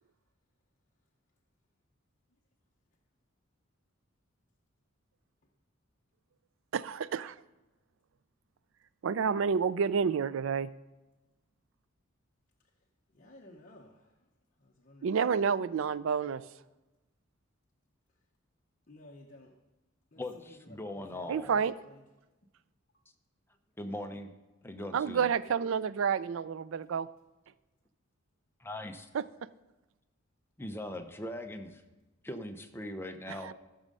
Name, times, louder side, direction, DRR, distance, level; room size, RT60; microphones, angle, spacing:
voice 1, 6.7-7.4 9.0-10.7 15.0-16.4 21.3-21.7 24.9-27.1 29.1-29.5 33.3-33.5, right 6 dB, 70° right, 17 dB, 0.4 m, -29 dB
voice 2, 13.1-14.0 14.6-15.1 18.9-19.5 20.1-21.5 21.9-22.0, left 1 dB, 40° left, -1 dB, 0.9 m, -54 dB
voice 3, 20.2-21.7 23.8-24.3 24.6-25.3 28.6-29.1 30.6-31.8 32.2-33.5, left 1 dB, 10° left, 6 dB, 0.7 m, -40 dB
14.0 x 6.3 x 5.4 m, 1.1 s
head